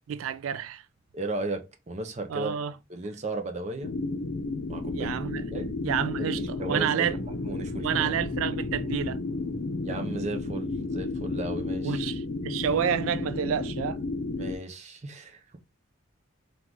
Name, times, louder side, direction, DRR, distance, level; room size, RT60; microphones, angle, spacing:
voice 1, 0.1-0.8 2.3-2.7 4.9-5.4 5.8-7.2 7.8-9.2 11.8-14.0, right 8 dB, 85° right, 0.3 m, -29 dB
voice 2, 1.1-2.5 2.9-3.9 4.7-5.1 5.5-5.7 6.2-7.2 7.4-8.1 9.8-12.1 14.3-15.6, right 2 dB, 35° right, 0.6 m, -35 dB
sound 1, 3.8-14.5, left 2 dB, 80° left, 0.6 m, -32 dB
sound 2, 6.2-12.1 12.4-12.9 13.2-13.6, left 1 dB, 35° left, 0.9 m, -47 dB
3.8 x 2.5 x 4.6 m
head